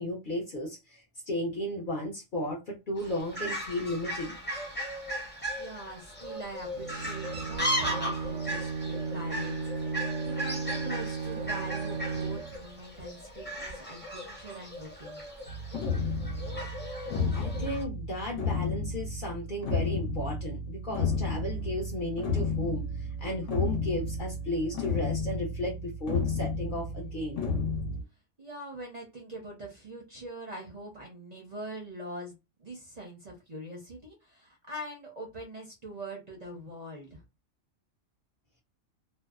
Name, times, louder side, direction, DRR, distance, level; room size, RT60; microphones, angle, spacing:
voice 1, 0.0-4.4 17.3-27.4, left 1 dB, 50° left, 0.7 m, -34 dB
Fowl, 3.0-17.8, equal, 10° left, 0.6 m, -37 dB
voice 2, 5.6-15.2 28.4-37.2, right 1 dB, 40° right, 0.6 m, -43 dB
Bowed string instrument, 6.7-12.7, right 4 dB, 85° right, 1.0 m, -35 dB
sound 1, 15.5-28.0, left 3 dB, 70° left, 1.0 m, -32 dB
2.6 x 2.0 x 2.3 m
omnidirectional pair, 1.4 m